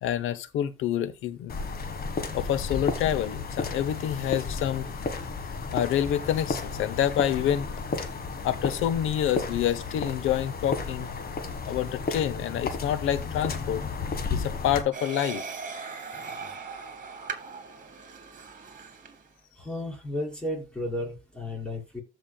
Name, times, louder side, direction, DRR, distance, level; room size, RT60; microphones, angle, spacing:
voice 1, 0.0-1.5 2.3-5.1 5.7-7.7 8.4-11.1 11.7-13.8 14.3-15.5, left 10 dB, 85° left, 0.8 m, -27 dB
sound 1, 1.5-14.8, left 4 dB, 50° left, 1.6 m, -33 dB
sound 2, 14.9-19.3, right 5 dB, 45° right, 2.2 m, -39 dB
voice 2, 19.6-22.0, left 1 dB, 5° left, 4.6 m, -33 dB
15.0 x 5.2 x 2.3 m
cardioid pair, 90°, 20 cm